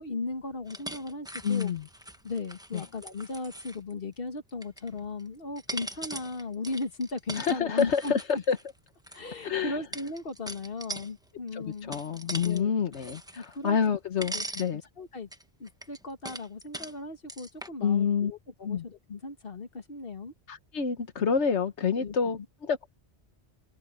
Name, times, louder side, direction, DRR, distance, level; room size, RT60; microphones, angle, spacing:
voice 1, 0.0-1.7 2.2-8.4 9.1-12.0 12.4-12.7 13.4-13.8 14.3-14.5 15.0-15.3 15.6-20.3 22.0-22.2, left 3 dB, 55° left, 2.0 m, -37 dB
sound 1, 0.7-3.9 4.5-5.2 5.6-9.2 9.9-11.1 11.5-12.6 12.9-14.0 14.2-14.7 15.3-16.9 17.3-17.7, right 1 dB, 5° right, 0.8 m, -41 dB
voice 2, 1.4-1.8 2.7-2.8 7.4-8.2 8.5-8.6 9.4-9.8 11.5-14.8 17.8-18.3 18.6-18.8 20.5-22.9, left 6 dB, 85° left, 1.4 m, -28 dB
omnidirectional pair, 1.1 m